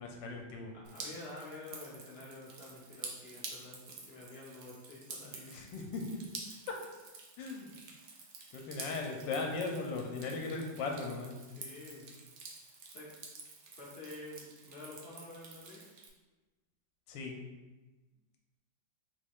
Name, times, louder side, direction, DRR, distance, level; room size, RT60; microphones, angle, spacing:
voice 1, 0.0-0.7 5.5-6.0 7.4-7.7 8.5-11.4 17.1-17.3, left 3 dB, 85° left, 1 dB, 1.3 m, -38 dB
voice 2, 0.7-5.6 7.5-7.7 11.5-12.1 12.9-13.1 13.7-15.8, left 2 dB, 55° left, -4 dB, 0.7 m, -49 dB
Drip, 0.8-16.1, right 4 dB, 80° right, 0.6 m, -49 dB
3.8 x 3.1 x 3.5 m, 1.2 s
omnidirectional pair, 2.0 m